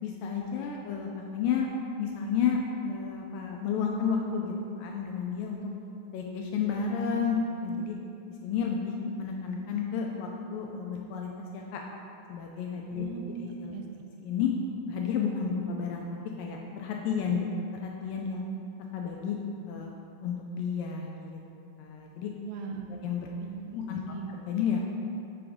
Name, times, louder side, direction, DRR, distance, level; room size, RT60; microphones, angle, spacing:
voice 1, 0.0-1.7 2.0-5.6 6.1-8.0 8.4-11.8 12.3-13.1 13.4-13.8 14.2-14.5 14.9-16.1 16.4-17.5 17.7-18.4 18.9-19.4 19.7-19.9 20.2-21.4 21.8-22.3 23.0-23.3 23.7-24.9, left 6 dB, 80° left, 0 dB, 2.1 m, -31 dB
voice 2, 12.9-13.9 22.4-23.0 23.4-24.3, right 5 dB, 80° right, 3 dB, 2.4 m, -40 dB
8.3 x 7.0 x 3.6 m, 2.6 s
omnidirectional pair, 4.3 m